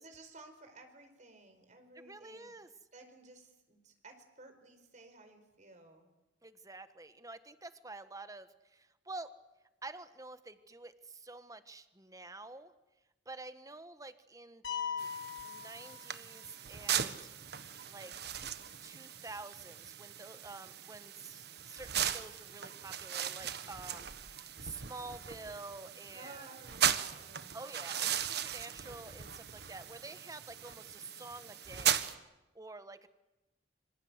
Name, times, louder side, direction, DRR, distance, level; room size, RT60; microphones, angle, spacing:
voice 1, 0.0-2.5 2.9-6.1 26.1-27.6, right 2 dB, 40° right, 7 dB, 4.7 m, -55 dB
voice 2, 1.9-2.7 6.4-9.3 9.8-12.7 13.2-15.1 15.4-17.3 17.8-18.1 18.8-26.5 27.5-32.0 32.5-33.1, right 3 dB, 20° right, 11 dB, 1.4 m, -49 dB
sound 1, 14.6-16.5, left 7 dB, 80° left, 5.2 m, -40 dB
sound 2, 15.0-32.1, right 9 dB, 60° right, 1.4 m, -38 dB
26.5 x 26.0 x 8.1 m, 0.99 s
head